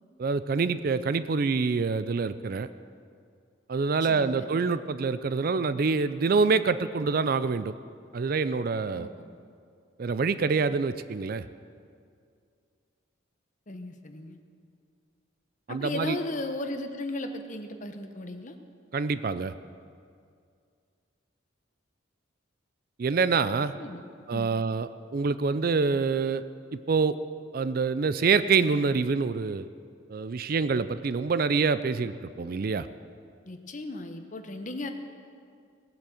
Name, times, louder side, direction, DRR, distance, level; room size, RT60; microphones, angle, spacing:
voice 1, 0.2-2.7 3.7-7.7 8.1-9.1 10.0-11.5 15.7-16.2 18.9-19.5 23.0-23.7 24.3-26.4 26.7-27.1 27.5-29.7 30.1-32.9, right 4 dB, 45° right, 14 dB, 0.4 m, -26 dB
voice 2, 4.0-4.5 8.9-9.1 13.7-14.4 15.7-18.6 23.8-24.0 24.3-24.5 33.5-34.9, left 2 dB, 40° left, 6 dB, 1.0 m, -36 dB
18.0 x 8.5 x 7.6 m, 2.3 s
head